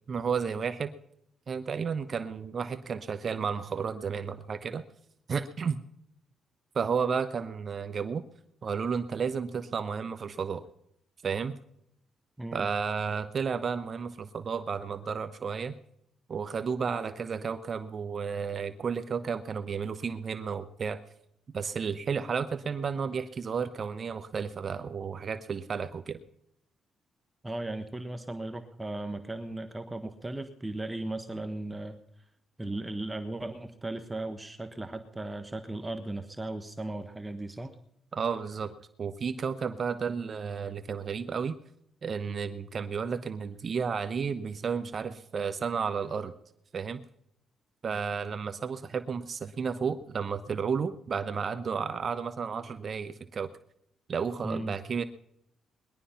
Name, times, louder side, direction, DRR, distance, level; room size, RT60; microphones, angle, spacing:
voice 1, 0.1-0.9 1.5-4.8 5.3-5.8 6.7-8.2 8.6-10.7 11.2-11.6 12.5-15.7 16.3-21.0 21.5-26.2 38.1-41.6 42.0-46.3 46.7-47.0 47.8-53.5 54.1-55.0, right 6 dB, 45° right, 11 dB, 0.9 m, -32 dB
voice 2, 27.4-32.0 32.6-37.8 54.4-54.8, right 2 dB, 15° right, 7 dB, 1.3 m, -36 dB
21.0 x 11.5 x 5.7 m, 0.77 s
cardioid pair, 95°, 0 cm